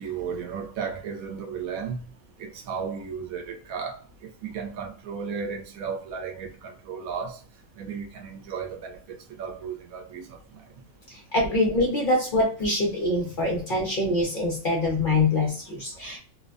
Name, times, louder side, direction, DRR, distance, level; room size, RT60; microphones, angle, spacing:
voice 1, 0.0-2.0 2.4-7.4 7.8-10.4, right 6 dB, 75° right, 1.0 m, -34 dB
voice 2, 11.3-16.2, left 2 dB, 45° left, 0.8 m, -24 dB
2.6 x 2.1 x 2.3 m
omnidirectional pair, 1.5 m